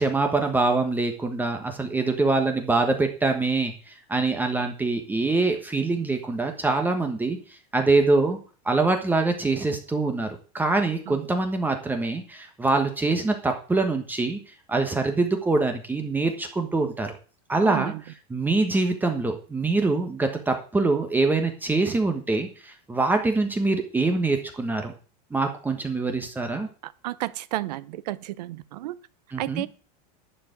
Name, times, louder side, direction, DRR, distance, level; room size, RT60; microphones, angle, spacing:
voice 1, 0.0-7.4 7.7-8.4 8.6-10.3 10.5-14.4 14.7-17.1 17.5-17.9 18.3-24.9 25.3-26.7 29.3-29.6, right 3 dB, 10° right, 4 dB, 1.2 m, -24 dB
voice 2, 17.6-18.0 26.8-29.0 29.4-29.7, right 16 dB, 75° right, 17 dB, 0.8 m, -32 dB
11.0 x 4.8 x 8.1 m, 0.39 s
supercardioid pair, 150°, 21 cm